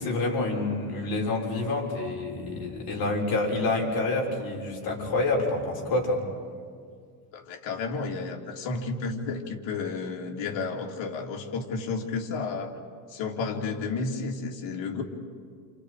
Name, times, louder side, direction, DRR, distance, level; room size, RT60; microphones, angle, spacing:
voice 1, 0.0-6.2, left 2 dB, 45° left, -1 dB, 6.3 m, -28 dB
voice 2, 7.3-12.8 13.1-15.0, left 4 dB, 65° left, 1 dB, 3.4 m, -32 dB
29.5 x 29.0 x 5.1 m, 2.1 s
cardioid pair, 115°, 49 cm